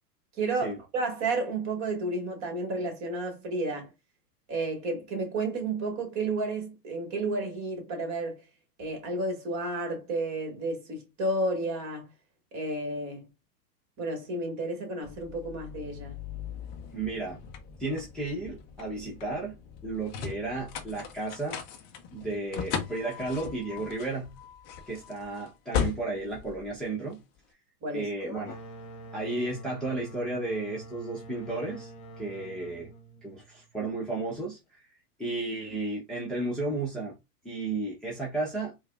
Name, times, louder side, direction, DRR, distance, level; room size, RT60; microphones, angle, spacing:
voice 1, 0.4-3.9 4.5-8.4 8.8-12.1 12.5-13.3 14.0-16.2 27.8-28.5, right 2 dB, 35° right, 1.7 m, -32 dB
sound 1, 15.0-27.4, left 7 dB, 20° left, 0.4 m, -38 dB
voice 2, 16.9-17.4 17.8-19.5 19.8-21.6 22.1-24.4 24.9-27.2 27.9-28.6 29.1-31.9 32.2-32.9 33.2-34.9 35.2-37.2 37.4-38.8, right 2 dB, ahead, 0.8 m, -33 dB
sound 2, 28.4-33.9, right 1 dB, 40° left, 1.0 m, -46 dB
4.6 x 2.3 x 2.4 m
hypercardioid pair, 110°, 48 cm